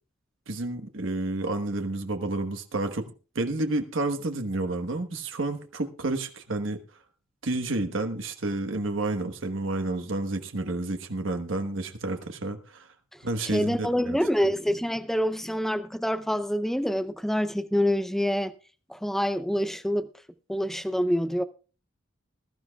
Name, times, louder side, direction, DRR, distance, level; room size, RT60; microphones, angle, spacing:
voice 1, 0.5-3.1 3.3-6.8 7.4-12.9 13.2-14.2, right 2 dB, 70° right, 1.2 m, -30 dB
voice 2, 13.5-18.5 18.9-20.1 20.5-21.4, equal, ahead, 0.5 m, -26 dB
21.5 x 12.0 x 2.3 m
head